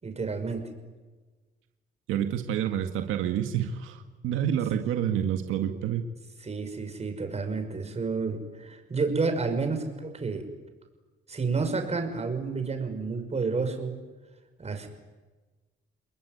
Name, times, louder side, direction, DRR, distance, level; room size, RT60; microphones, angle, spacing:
voice 1, 0.0-0.7 6.4-10.5 11.3-14.0 14.6-14.9, right 4 dB, 35° right, 6 dB, 6.1 m, -30 dB
voice 2, 2.1-6.1, right 9 dB, 90° right, 6 dB, 1.9 m, -28 dB
30.0 x 20.5 x 9.6 m, 1.3 s
cardioid pair, 90°, 20 cm